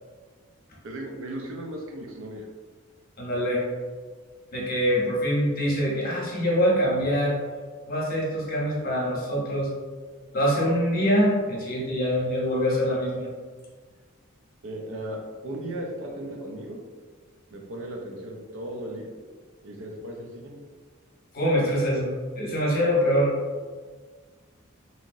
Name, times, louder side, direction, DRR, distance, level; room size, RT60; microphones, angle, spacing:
voice 1, 0.8-2.5 14.6-15.2 15.4-16.8 17.5-19.1 19.6-20.6, right 1 dB, 65° right, 0 dB, 0.5 m, -36 dB
voice 2, 3.2-3.6 4.5-7.4 7.9-9.7 10.3-13.3 21.3-23.3, equal, 45° left, -4 dB, 0.8 m, -24 dB
2.8 x 2.8 x 2.5 m, 1.5 s
head